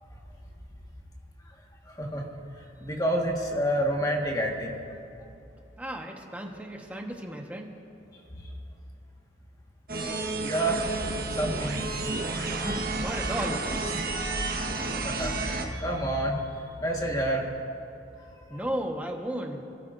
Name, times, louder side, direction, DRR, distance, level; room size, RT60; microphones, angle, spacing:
voice 1, 1.9-2.3 2.8-4.7 10.4-10.8 11.4-11.8 15.0-16.4 16.8-17.4 18.2-18.6, right 1 dB, 20° left, 0 dB, 1.5 m, -28 dB
voice 2, 5.8-7.7 12.6-14.1 17.4-17.5 18.5-19.6, right 1 dB, 10° right, 1 dB, 1.2 m, -35 dB
sound 1, 9.9-15.7, right 3 dB, 55° right, 1.3 m, -31 dB
28.5 x 13.0 x 2.6 m, 2.6 s
head